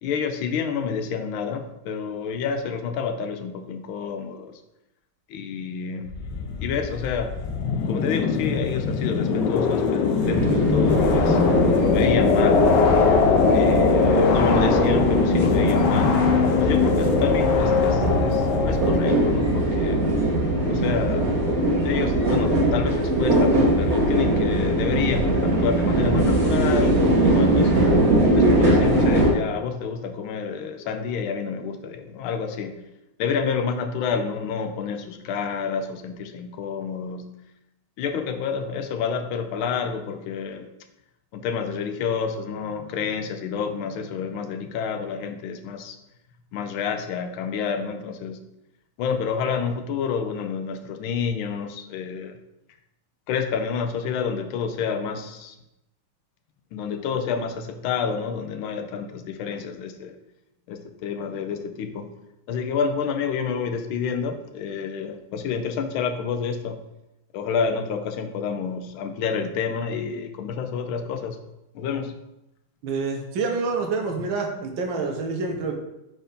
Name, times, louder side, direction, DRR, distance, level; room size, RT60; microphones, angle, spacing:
voice 1, 0.0-4.6 5.3-6.1 6.6-7.4 7.9-12.8 13.5-20.1 20.7-21.3 21.8-27.9 28.3-32.8 33.2-37.3 38.0-40.7 41.3-46.0 46.5-48.4 49.0-52.4 53.3-55.6 56.7-60.1 60.7-62.1 62.5-66.8 67.3-71.4 71.7-72.2, left 6 dB, 85° left, 7 dB, 1.5 m, -29 dB
sound 1, 6.1-19.5, left 6 dB, 70° left, 1.2 m, -22 dB
sound 2, 10.2-29.3, right 1 dB, 50° right, 1.6 m, -21 dB
voice 2, 72.8-75.7, right 4 dB, 75° right, 2 dB, 1.6 m, -27 dB
4.5 x 4.4 x 5.1 m, 0.91 s
omnidirectional pair, 2.2 m